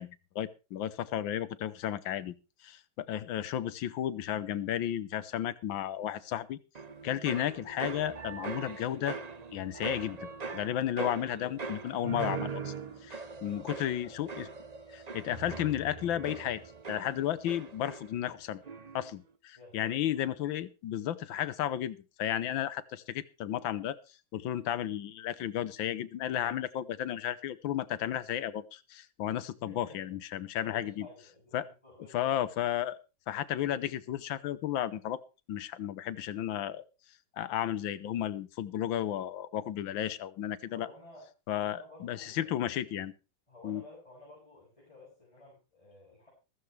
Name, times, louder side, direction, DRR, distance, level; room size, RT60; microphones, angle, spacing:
voice 1, 0.0-2.3 2.6-6.6 7.0-9.2 9.5-12.7 13.0-14.5 14.9-16.6 16.9-18.6 18.9-24.0 24.3-31.1 31.5-31.7 32.1-33.0 33.3-35.2 35.5-36.8 37.4-40.9 41.5-43.1 43.6-43.8, left 11 dB, 90° left, 15 dB, 1.6 m, -33 dB
sound 1, 6.7-18.4 18.6-19.2, right 4 dB, 50° right, 0.4 m, -41 dB
voice 2, 13.5-14.1 19.6-20.2 29.7-30.1 30.4-32.3 40.7-42.6 43.5-46.3, left 2 dB, 15° left, -6 dB, 7.4 m, -54 dB
14.5 x 14.5 x 3.3 m, 0.30 s
omnidirectional pair, 2.1 m